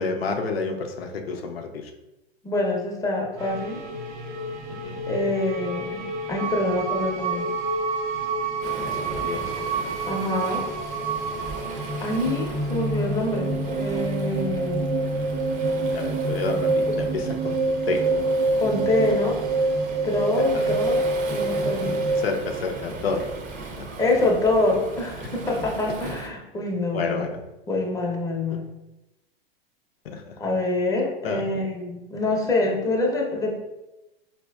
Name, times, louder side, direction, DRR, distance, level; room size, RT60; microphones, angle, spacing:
voice 1, 0.0-1.9 4.7-5.0 8.8-9.7 15.7-18.0 20.4-20.8 22.2-23.3 23.6-23.9 25.2-25.3 26.9-27.4 28.5-28.6 30.0-30.4 31.2-31.4, left 4 dB, 80° left, 4 dB, 0.5 m, -30 dB
voice 2, 2.4-3.8 5.1-7.4 10.1-10.6 12.0-14.8 18.6-19.4 20.0-21.0 21.3-22.0 24.0-27.3 27.7-28.7 30.4-33.6, left 2 dB, 10° left, -1 dB, 0.7 m, -25 dB
sound 1, 3.4-22.2, right 2 dB, 60° right, 0.8 m, -27 dB
Waves surf, 8.6-26.3, right 3 dB, 25° right, 0.6 m, -38 dB
4.2 x 2.5 x 2.2 m, 0.97 s
hypercardioid pair, 100°, 30 cm